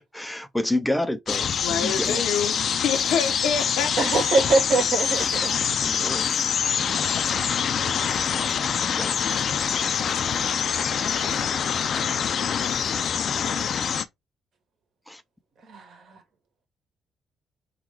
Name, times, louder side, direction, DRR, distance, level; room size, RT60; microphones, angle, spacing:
voice 1, 0.0-2.2 5.8-6.3 8.9-9.2 15.1-15.2, left 1 dB, 5° left, 0.5 m, -29 dB
sound 1, 1.3-14.1, left 7 dB, 55° left, 0.5 m, -25 dB
voice 2, 1.6-4.3 11.1-12.7, left 7 dB, 85° left, 0.8 m, -29 dB
voice 3, 4.0-5.6 15.7-16.2, right 3 dB, 65° right, 1.9 m, -23 dB
3.9 x 2.3 x 4.5 m
cardioid pair, 90°, 0 cm